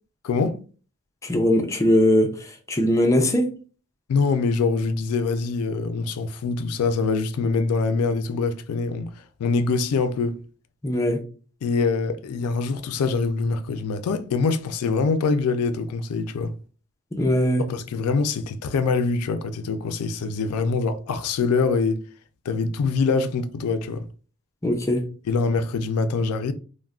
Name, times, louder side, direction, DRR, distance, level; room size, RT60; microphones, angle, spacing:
voice 1, 0.2-0.6 4.1-9.1 9.4-10.4 11.6-16.5 17.7-22.0 22.5-24.0 25.3-26.5, left 4 dB, 85° left, 0.3 m, -24 dB
voice 2, 1.2-3.5 10.8-11.2 17.1-17.6 24.6-25.0, left 1 dB, 15° left, 0.4 m, -20 dB
2.3 x 2.1 x 3.4 m
head